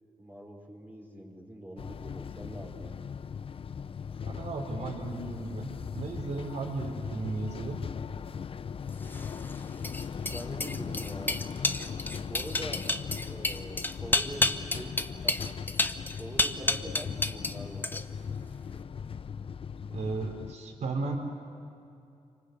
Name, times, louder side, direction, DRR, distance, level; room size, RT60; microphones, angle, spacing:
voice 1, 0.2-2.9 10.2-11.4 12.3-12.8 13.2-15.5 16.2-18.0, equal, 15° right, 0 dB, 4.2 m, -43 dB
sound 1, 1.8-20.5, left 6 dB, 50° left, 0.5 m, -39 dB
voice 2, 4.2-5.7 5.9-7.8 19.9-21.2, right 3 dB, 75° right, 2 dB, 4.7 m, -35 dB
sound 2, 9.0-17.6 17.8-18.3, left 2 dB, 15° left, 0.9 m, -30 dB
27.5 x 25.5 x 8.3 m, 2.6 s
wide cardioid pair, 110°, 12 cm